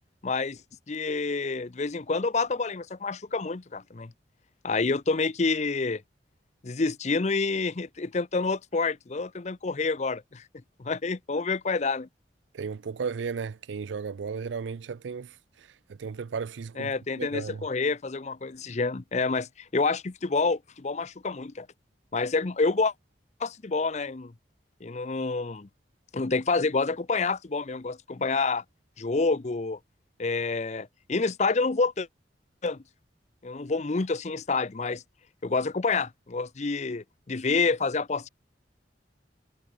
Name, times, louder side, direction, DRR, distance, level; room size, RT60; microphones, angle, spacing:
voice 1, 0.2-0.6 0.9-4.1 4.6-6.0 6.6-10.4 10.8-12.1 16.8-21.7 22.1-22.9 23.4-24.3 24.8-25.7 26.1-28.6 29.0-29.8 30.2-32.1 32.6-32.8 33.4-35.0 35.4-38.3, left 4 dB, 40° left, 0.6 m, -28 dB
voice 2, 12.5-17.7, right 5 dB, 90° right, 0.4 m, -35 dB
head